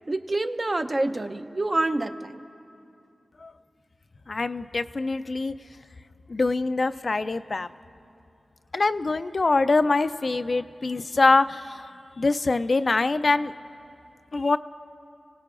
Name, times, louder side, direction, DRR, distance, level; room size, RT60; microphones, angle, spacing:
voice 1, 0.1-2.4, right 2 dB, 40° right, 7 dB, 0.7 m, -27 dB
voice 2, 4.3-5.5 6.3-7.7 8.7-11.9 12.2-13.5 14.3-14.6, left 3 dB, 55° left, 11 dB, 0.4 m, -24 dB
29.5 x 17.5 x 2.5 m, 2.6 s
cardioid pair, 50°, 0 cm